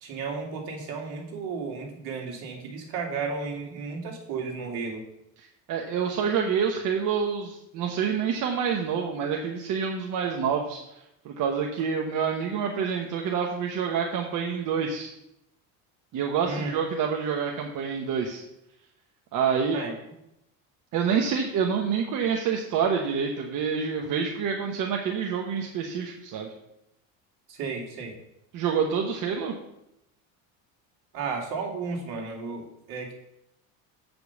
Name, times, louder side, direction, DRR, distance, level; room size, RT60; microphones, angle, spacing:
voice 1, 0.0-5.0 16.5-16.7 19.7-19.9 27.5-28.1 31.1-33.1, right 4 dB, 65° right, 0 dB, 2.5 m, -33 dB
voice 2, 5.4-10.8 11.2-15.1 16.1-18.4 19.3-19.8 20.9-26.5 28.5-29.5, right 6 dB, 50° right, 2 dB, 1.0 m, -27 dB
7.8 x 5.2 x 7.0 m, 0.84 s
cardioid pair, 135°, 40 cm